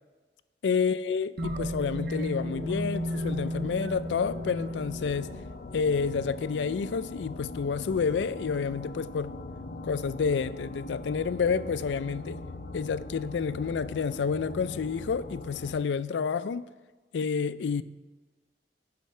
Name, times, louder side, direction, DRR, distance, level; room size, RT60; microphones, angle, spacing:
voice 1, 0.6-5.3 5.7-9.3 9.8-12.4 12.7-16.7 17.1-17.8, left 5 dB, 90° left, 0.4 m, -29 dB
sound 1, 1.4-15.7, left 2 dB, 50° left, 0.6 m, -41 dB
sound 2, 1.4-6.1, equal, 60° right, 0.6 m, -34 dB
7.5 x 5.7 x 6.6 m
head